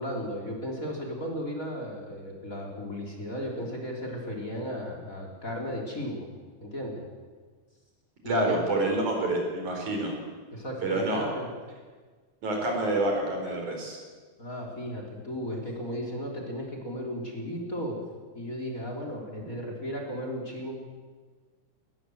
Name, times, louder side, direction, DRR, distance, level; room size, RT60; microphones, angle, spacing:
voice 1, 0.0-6.3 6.6-7.0 8.2-8.6 10.5-11.5 14.4-18.0 18.3-20.7, equal, 25° left, 1 dB, 3.8 m, -35 dB
voice 2, 8.3-10.1 10.8-11.2 12.4-14.0, right 2 dB, 70° right, 1 dB, 6.1 m, -27 dB
21.5 x 19.0 x 7.9 m, 1.4 s
omnidirectional pair, 3.6 m